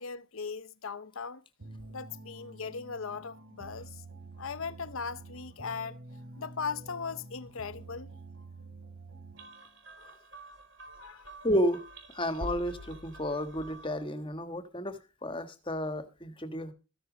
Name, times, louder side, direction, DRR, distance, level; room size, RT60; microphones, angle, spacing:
voice 1, 0.0-1.4 1.9-4.0 4.4-6.0 6.4-8.1 11.0-11.3, left 5 dB, 75° left, 0.8 m, -38 dB
sound 1, 1.6-9.7, right 2 dB, 75° right, 3.6 m, -48 dB
sound 2, 9.4-14.1, equal, 60° right, 3.9 m, -47 dB
voice 2, 11.4-11.8 12.1-16.7, equal, 25° left, 1.4 m, -32 dB
14.0 x 10.0 x 5.0 m
head